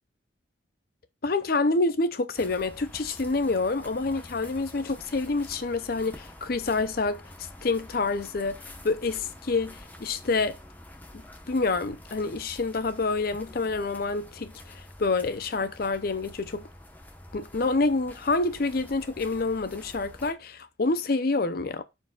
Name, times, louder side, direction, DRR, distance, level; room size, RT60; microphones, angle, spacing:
voice 1, 1.2-7.2 7.6-10.6 11.5-16.7 17.3-21.8, left 3 dB, 50° left, 0.6 m, -27 dB
sound 1, 2.4-20.3, left 1 dB, 10° left, 1.0 m, -47 dB
13.5 x 4.7 x 2.3 m
head